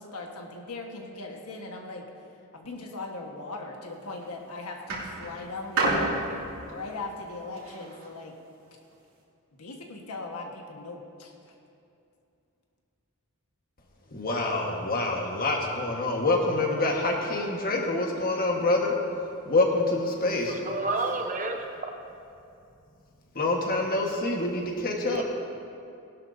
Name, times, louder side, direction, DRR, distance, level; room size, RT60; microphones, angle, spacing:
voice 1, 0.0-2.0 2.5-6.1 6.7-8.3 9.6-11.3, left 3 dB, 80° left, 1 dB, 1.5 m, -39 dB
sound 1, 3.9-4.3 4.9-8.1 8.9-9.0, right 2 dB, 65° right, 2.7 m, -30 dB
voice 2, 14.1-19.0 19.4-20.6 23.3-25.2, left 2 dB, 40° left, 0 dB, 1.5 m, -26 dB
voice 3, 20.6-21.6 25.0-25.2, right 3 dB, 35° right, 4 dB, 0.9 m, -29 dB
18.0 x 12.0 x 2.7 m, 2.5 s
head